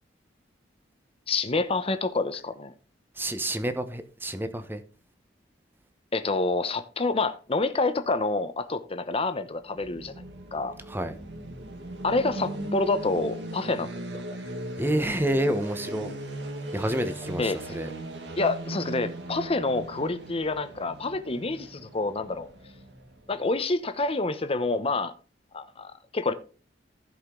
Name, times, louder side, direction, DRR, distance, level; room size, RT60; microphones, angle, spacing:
voice 1, 1.3-2.7 6.1-10.1 10.5-10.7 12.0-14.2 17.4-17.6 18.4-22.5 23.3-25.1 25.5-26.3, left 3 dB, 35° left, 0.9 m, -28 dB
voice 2, 3.2-4.8 10.9-11.1 14.8-16.1 16.7-17.9, right 1 dB, 10° right, 1.0 m, -28 dB
sound 1, 9.6-23.5, right 1 dB, 75° right, 1.8 m, -38 dB
15.0 x 5.2 x 3.8 m
head